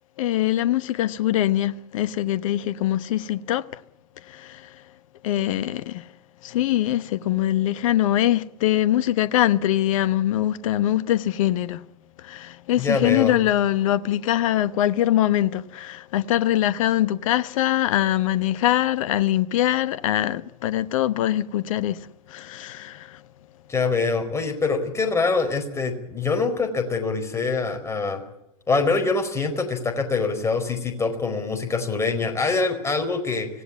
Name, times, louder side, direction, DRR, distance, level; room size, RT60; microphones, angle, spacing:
voice 1, 0.2-3.8 4.2-4.8 5.2-6.1 6.4-11.9 12.2-23.2, left 13 dB, 60° left, 1.0 m, -23 dB
voice 2, 12.8-13.4 23.7-28.2 28.7-33.5, left 4 dB, 15° left, 4.6 m, -24 dB
25.5 x 17.0 x 8.5 m
figure-of-eight pair, 95°, 19 cm